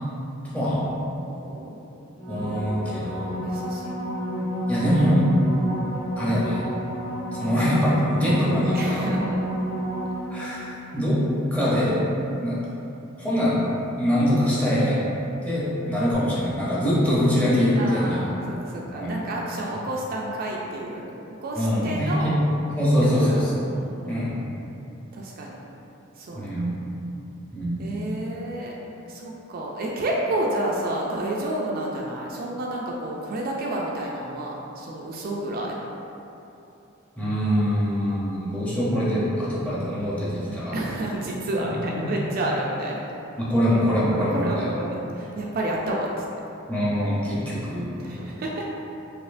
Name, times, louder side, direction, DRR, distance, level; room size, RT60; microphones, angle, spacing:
voice 1, 0.5-0.9 2.3-3.4 4.7-5.3 6.2-6.6 7.3-9.1 10.3-11.2 11.5-12.0 12.4-12.6 13.2-15.0 15.4-18.2 18.9-19.2 21.6-23.5 24.1-24.3 26.3-26.7 27.5-27.8 37.2-40.8 41.6-41.8 42.0-42.1 43.4-44.7 46.7-47.9, equal, 5° left, -9 dB, 0.7 m, -23 dB
voice 2, 1.3-1.8 3.2-4.6 8.7-9.4 17.8-21.0 21.4-22.4 23.0-23.4 23.8-24.5 25.1-25.6 26.2-26.7 27.8-28.8 29.1-35.8 40.7-43.0 44.2-46.2 47.9-48.7, right 1 dB, 45° right, -2 dB, 0.3 m, -30 dB
sound 1, 2.2-10.8 16.1-16.2, equal, 25° left, 1.2 m, -29 dB
4.2 x 2.7 x 2.5 m, 2.9 s
head